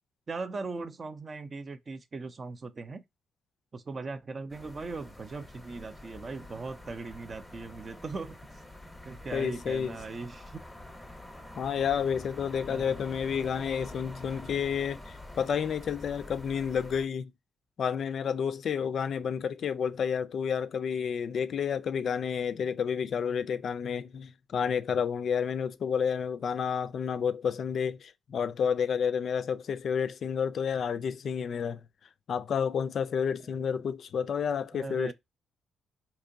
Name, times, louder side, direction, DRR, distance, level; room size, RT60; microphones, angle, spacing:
voice 1, 0.3-3.0 3.7-8.4 9.0-10.6 12.7-13.0 33.4-33.6 34.7-35.1, right 3 dB, 35° right, 0.4 m, -39 dB
sound 1, 4.5-17.1, left 1 dB, 5° left, 0.8 m, -47 dB
voice 2, 9.3-10.0 11.6-17.3 17.8-31.8 32.3-35.1, left 7 dB, 55° left, 0.3 m, -30 dB
3.6 x 2.9 x 2.6 m
cardioid pair, 90°, 0 cm